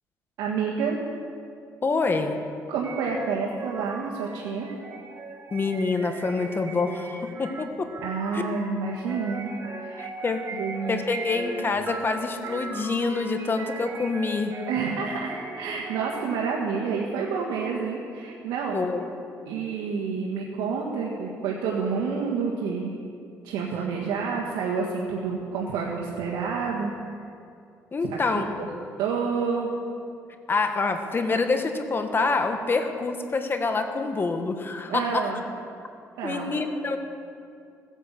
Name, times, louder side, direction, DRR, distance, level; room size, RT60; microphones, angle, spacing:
voice 1, 0.4-1.0 2.7-4.7 8.0-9.5 9.8-10.0 10.5-11.0 14.7-18.8 19.5-22.9 23.4-26.9 28.0-28.7 29.0-29.7 34.9-35.4 36.2-36.6, right 5 dB, 90° right, -3 dB, 1.7 m, -29 dB
voice 2, 1.8-2.4 5.5-7.9 8.3-8.6 10.0-10.4 10.9-14.5 18.7-19.1 27.9-28.6 30.5-35.3 36.2-37.0, left 3 dB, 35° left, 6 dB, 1.5 m, -26 dB
sound 1, 2.8-16.5, right 3 dB, 50° right, 1.8 m, -39 dB
16.5 x 10.0 x 7.6 m, 2.4 s
cardioid pair, 90°, 7 cm